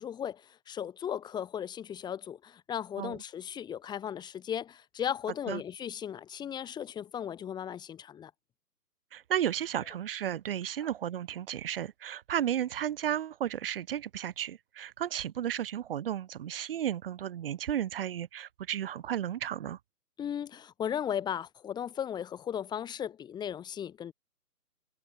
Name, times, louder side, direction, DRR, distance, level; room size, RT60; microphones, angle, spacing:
voice 1, 0.0-8.3 10.8-10.9 20.2-24.1, left 9 dB, 10° left, 5.7 m, -36 dB
voice 2, 9.1-19.8, right 10 dB, 35° right, 6.5 m, -33 dB
figure-of-eight pair, 150°, 47 cm